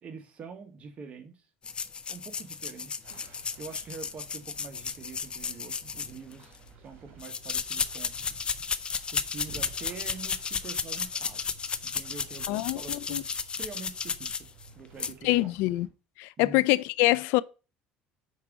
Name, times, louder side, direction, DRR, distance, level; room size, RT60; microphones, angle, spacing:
voice 1, 0.0-1.5 2.1-3.0 3.6-8.6 9.1-11.4 11.8-14.5 14.7-15.5 16.4-16.7, right 5 dB, 35° right, 1.5 m, -45 dB
sound 1, 1.6-6.6 7.2-14.7 15.0-15.1, left 6 dB, 30° left, 0.5 m, -34 dB
sound 2, 3.0-15.9, right 5 dB, 65° right, 2.1 m, -53 dB
voice 2, 12.5-13.2 15.2-15.9 16.2-17.4, left 19 dB, 80° left, 0.4 m, -25 dB
4.9 x 4.6 x 6.1 m
cardioid pair, 120°, 4 cm